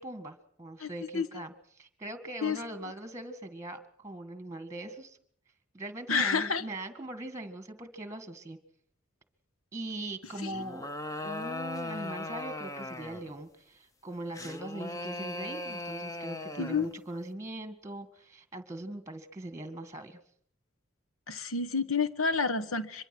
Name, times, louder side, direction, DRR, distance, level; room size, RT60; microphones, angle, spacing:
voice 1, 0.0-5.2 5.7-8.6 9.7-10.9 11.2-20.2, right 1 dB, 15° right, 9 dB, 1.9 m, -41 dB
voice 2, 0.8-1.4 2.4-2.6 6.1-6.6 10.4-10.6 16.6-16.9 21.3-23.1, left 5 dB, 80° left, 13 dB, 1.2 m, -30 dB
sound 1, 10.5-13.3 14.3-16.9, left 2 dB, 15° left, 0.9 m, -38 dB
25.0 x 22.5 x 6.2 m, 0.64 s
head